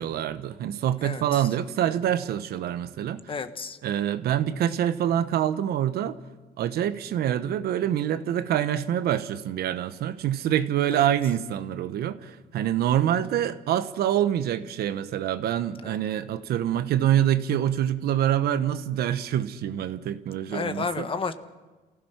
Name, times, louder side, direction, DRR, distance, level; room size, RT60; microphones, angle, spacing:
voice 1, 0.0-3.3 3.8-6.2 6.6-21.1, right 10 dB, 70° right, 12 dB, 1.1 m, -26 dB
voice 2, 3.3-3.8 10.9-11.0 15.8-16.0 20.5-21.3, left 5 dB, 30° left, 10 dB, 1.4 m, -31 dB
27.5 x 16.0 x 5.9 m, 1.3 s
cardioid pair, 110°, 17 cm